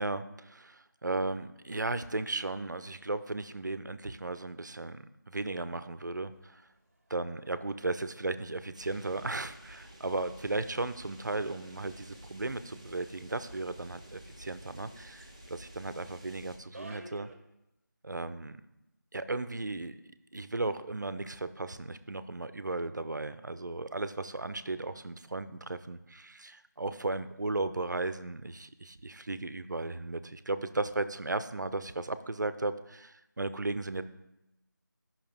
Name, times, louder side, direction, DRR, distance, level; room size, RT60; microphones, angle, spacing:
voice 1, 0.0-6.6 7.1-17.3 18.0-18.6 19.1-20.0 20.3-34.0, right 2 dB, 65° right, 12 dB, 0.6 m, -35 dB
Victoria St tube station announce and Mind the Gap, 6.3-17.3, right 1 dB, 45° right, 1.1 m, -57 dB
sound 1, 8.7-16.6, right 1 dB, 20° right, 0.6 m, -52 dB
11.0 x 5.7 x 3.5 m, 0.90 s
figure-of-eight pair, 175°, 11 cm